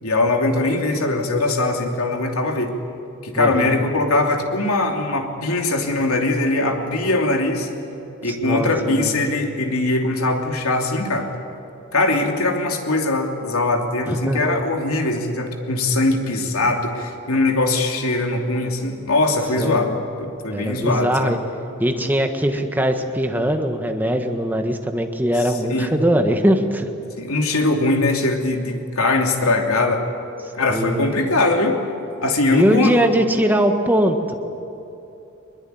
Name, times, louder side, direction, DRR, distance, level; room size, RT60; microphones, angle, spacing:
voice 1, 0.0-2.7 3.2-7.7 8.2-11.3 11.9-21.4 25.6-25.9 27.2-30.1 30.6-31.8 32.2-32.9, left 2 dB, 85° left, 3 dB, 2.9 m, -21 dB
voice 2, 3.3-3.7 8.2-9.2 14.1-14.5 19.6-19.8 20.5-21.4 21.8-26.9 30.7-31.1 32.5-34.4, equal, 10° right, 5 dB, 1.5 m, -21 dB
22.0 x 22.0 x 9.4 m, 2.9 s
head